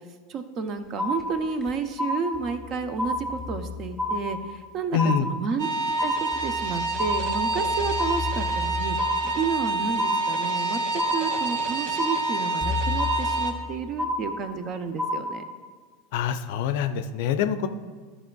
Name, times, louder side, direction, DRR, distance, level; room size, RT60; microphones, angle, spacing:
voice 1, 0.3-5.7 6.0-10.8 11.1-15.4, right 5 dB, 45° right, 9 dB, 0.7 m, -31 dB
sound 1, 0.8-1.8 2.3-4.7 5.9-10.3 11.1-11.2 12.6-14.5, left 4 dB, 25° right, 2.3 m, -36 dB
sound 2, 1.0-1.7 2.0-2.7 3.0-3.7 4.0-4.7 5.0-5.7 6.0-6.7 7.0-7.7 8.0-8.7 9.0-9.7 10.0-10.7 11.0-11.7 12.0-12.7 13.0-13.7 14.0-14.7 15.0-15.7, left 1 dB, ahead, 1.3 m, -30 dB
voice 2, 4.9-5.3 16.1-17.7, left 7 dB, 60° left, 10 dB, 0.5 m, -25 dB
sound 3, 5.6-13.5, right 3 dB, 60° right, 0.9 m, -28 dB
13.0 x 5.5 x 2.3 m, 1.5 s
figure-of-eight pair, 80°, 0 cm